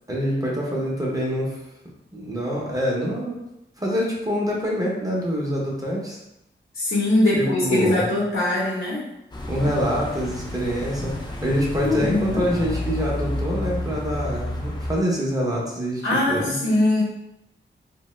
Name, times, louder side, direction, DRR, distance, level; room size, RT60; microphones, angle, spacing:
voice 1, 0.1-1.6 2.1-3.4 3.8-6.2 7.3-8.1 9.5-16.6, equal, 15° right, -4 dB, 0.7 m, -25 dB
voice 2, 6.7-9.0 11.8-12.4 16.0-17.0, left 2 dB, 70° left, -7 dB, 0.8 m, -22 dB
sound 1, 9.3-15.0, left 1 dB, 20° left, 0.4 m, -30 dB
2.8 x 2.1 x 3.0 m, 0.85 s
wide cardioid pair, 120°, 20 cm